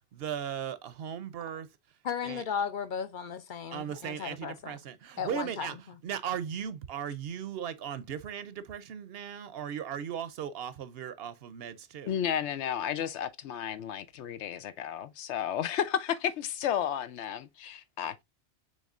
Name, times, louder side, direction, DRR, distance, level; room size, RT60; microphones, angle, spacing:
voice 1, 0.1-1.7 2.2-2.4 3.7-5.8 6.0-12.1, right 8 dB, 65° right, 0.8 m, -37 dB
voice 2, 2.0-4.8 5.2-6.0, left 7 dB, 55° left, 0.6 m, -35 dB
voice 3, 12.1-18.2, left 9 dB, 90° left, 0.9 m, -32 dB
6.4 x 3.2 x 2.4 m
omnidirectional pair, 1.2 m